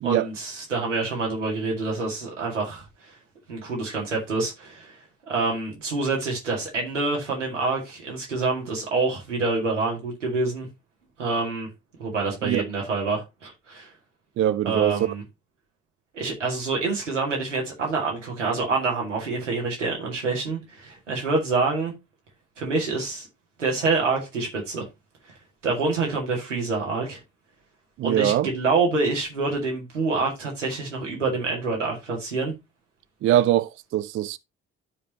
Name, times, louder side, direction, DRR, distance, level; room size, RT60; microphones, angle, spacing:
voice 1, 0.0-2.8 3.5-5.0 5.3-10.7 11.2-11.7 12.0-13.9 14.6-15.2 16.1-21.9 22.6-23.3 23.6-24.9 25.6-27.2 28.0-32.5, right 3 dB, 85° right, 2.2 m, -26 dB
voice 2, 14.4-15.1 28.0-28.5 33.2-34.4, right 12 dB, 35° right, 0.4 m, -22 dB
12.5 x 5.0 x 2.8 m
figure-of-eight pair, 45°, 36 cm